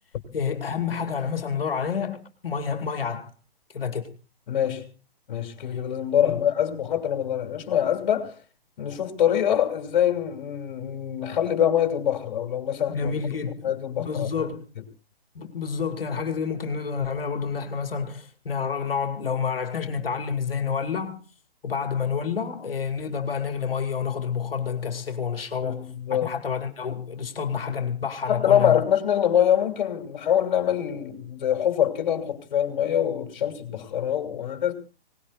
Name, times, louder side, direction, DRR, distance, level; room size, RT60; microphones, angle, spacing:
voice 1, 0.3-3.3 3.7-4.2 6.2-6.4 12.9-14.7 15.3-21.2 21.6-28.8, left 6 dB, 70° left, 2.4 m, -29 dB
voice 2, 4.5-4.9 5.3-8.4 8.8-13.1 13.6-14.5 25.6-26.3 28.3-34.7, left 10 dB, 50° left, 3.0 m, -24 dB
24.5 x 19.0 x 2.5 m
figure-of-eight pair, 135°, 30 cm